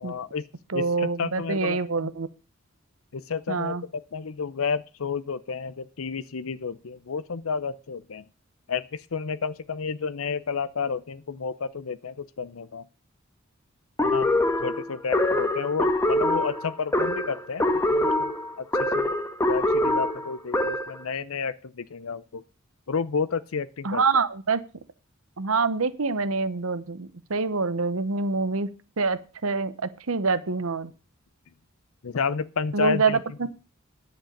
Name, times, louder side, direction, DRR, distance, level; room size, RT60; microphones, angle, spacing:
voice 1, 0.0-0.5 0.7-1.8 3.1-3.8 4.1-8.2 8.7-12.8 14.0-18.3 18.6-19.1 19.5-22.4 22.9-24.0 32.0-33.2, left 5 dB, 80° left, 0.6 m, -31 dB
voice 2, 0.7-2.3 3.5-3.8 23.8-24.6 25.4-28.7 29.0-30.9 32.7-33.5, right 4 dB, 85° right, 1.0 m, -26 dB
sound 1, 14.0-21.0, left 1 dB, 15° left, 1.6 m, -24 dB
10.5 x 8.1 x 6.6 m
head